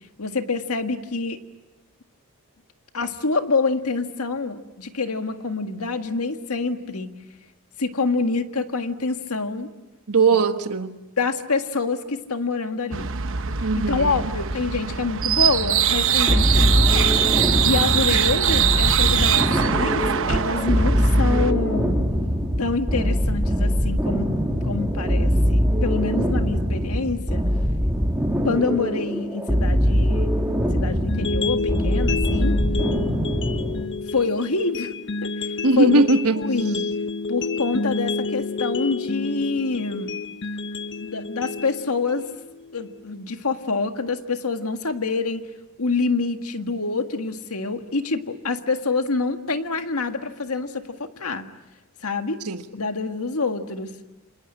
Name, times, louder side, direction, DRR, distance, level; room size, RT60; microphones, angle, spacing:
voice 1, 0.2-1.4 2.9-7.1 7.8-9.7 11.2-13.1 13.7-17.2 17.6-20.0 20.3-22.0 22.6-24.3 24.6-27.4 28.4-30.3 30.7-32.6 34.1-34.9 35.2-36.0 36.4-36.8 37.3-40.1 41.0-42.3 42.7-45.5 45.8-51.5 52.0-52.4 52.7-53.9, left 3 dB, 75° left, 1.8 m, -26 dB
voice 2, 10.1-11.0 13.6-14.3 35.6-36.4 52.4-52.6, right 3 dB, 85° right, 1.4 m, -20 dB
sound 1, 12.9-21.5, right 8 dB, 60° right, 1.0 m, -22 dB
sound 2, 16.3-33.9, equal, 10° right, 3.3 m, -22 dB
sound 3, 31.1-43.1, left 3 dB, 55° left, 0.9 m, -29 dB
28.5 x 26.5 x 7.7 m
head